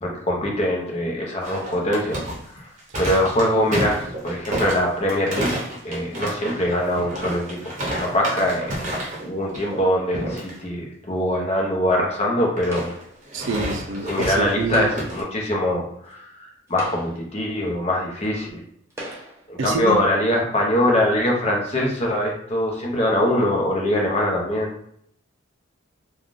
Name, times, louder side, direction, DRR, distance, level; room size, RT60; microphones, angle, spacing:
voice 1, 0.0-2.2 3.0-5.6 5.8-7.6 8.0-8.7 9.2-12.9 14.1-18.6 19.5-24.7, left 1 dB, 30° left, -1 dB, 0.7 m, -23 dB
sound 1, 1.4-9.3 9.5-9.8 10.1-10.5 12.6-15.2, right 1 dB, 40° right, 0.9 m, -30 dB
sound 2, 12.7-13.2 14.6-15.3 16.1-16.2 16.7-17.4 18.2-18.3 18.9-19.5, equal, 15° right, 0.6 m, -37 dB
voice 2, 13.3-14.9 19.6-20.0, right 3 dB, 70° right, 5 dB, 0.4 m, -27 dB
3.4 x 2.3 x 2.5 m, 0.68 s
head